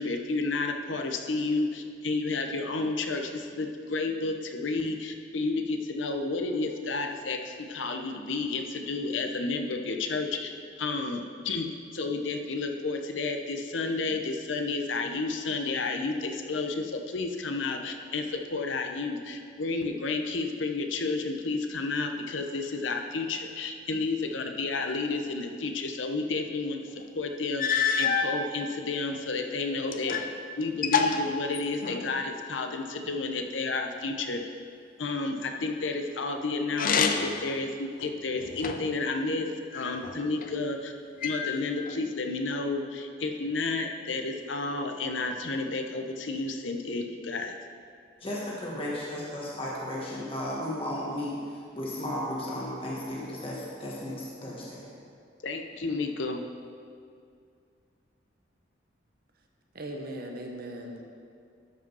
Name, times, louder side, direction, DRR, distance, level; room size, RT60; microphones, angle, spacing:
voice 1, 0.0-10.5 10.8-11.7 11.9-30.2 30.6-34.4 35.0-40.9 41.2-47.5 55.4-56.4, left 3 dB, 80° left, 4 dB, 0.8 m, -31 dB
sound 1, 27.0-27.1 27.6-28.3 29.1-30.3 30.6-32.1 36.7-37.4 38.0-39.0 39.7-40.5 41.2-42.0, left 6 dB, 50° left, 0.6 m, -28 dB
voice 2, 48.2-51.3 51.7-54.8, left 1 dB, 30° left, -5 dB, 1.5 m, -34 dB
voice 3, 59.7-61.1, right 1 dB, 55° right, 2 dB, 1.1 m, -38 dB
12.5 x 5.2 x 5.5 m, 2.4 s
head